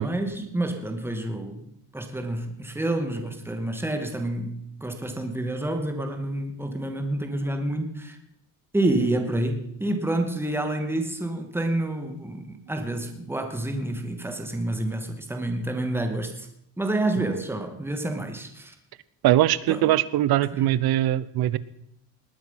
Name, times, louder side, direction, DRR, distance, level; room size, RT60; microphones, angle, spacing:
voice 1, 0.0-1.7 1.9-8.2 8.7-16.5 16.8-18.7 19.7-19.9 20.5-20.8, right 1 dB, 5° right, 5 dB, 2.2 m, -28 dB
voice 2, 19.2-21.6, right 14 dB, 60° right, 18 dB, 0.9 m, -21 dB
20.0 x 9.4 x 5.8 m, 0.74 s
cardioid pair, 130°, 42 cm